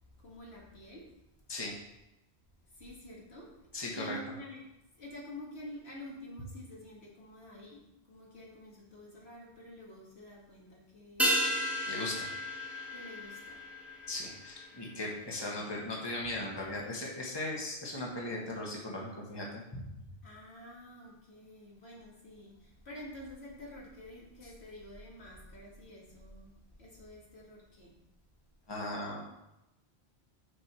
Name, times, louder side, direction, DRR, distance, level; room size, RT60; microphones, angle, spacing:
voice 1, 0.2-1.1 2.7-4.7 5.0-11.5 12.9-13.6 20.2-27.9, left 1 dB, 75° left, -4 dB, 2.3 m, -49 dB
voice 2, 3.7-4.2 11.8-12.3 14.1-19.8 24.4-24.5 28.7-29.3, left 2 dB, 25° left, -3 dB, 1.5 m, -38 dB
sound 1, 11.2-15.9 16.2-16.3, equal, ahead, 1.2 m, -34 dB
6.7 x 5.1 x 6.1 m, 0.92 s
omnidirectional pair, 1.1 m